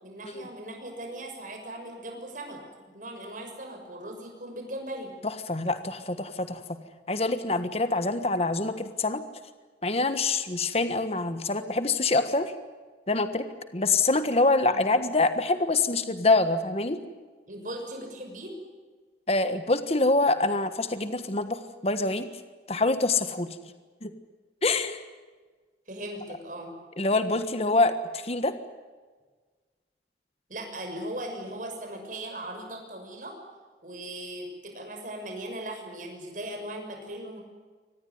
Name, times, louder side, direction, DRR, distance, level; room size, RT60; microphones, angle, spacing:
voice 1, 0.0-5.1 14.6-14.8 17.5-18.5 25.9-26.8 30.5-33.4 33.8-37.4, right 1 dB, 50° right, 3 dB, 6.4 m, -38 dB
voice 2, 5.2-6.6 7.1-9.2 9.8-12.5 13.1-13.5 13.7-17.0 19.3-22.3 22.7-23.5 24.0-24.1 24.6-25.0 27.0-28.5, left 3 dB, 35° left, 10 dB, 1.4 m, -25 dB
25.0 x 19.0 x 9.5 m, 1.4 s
head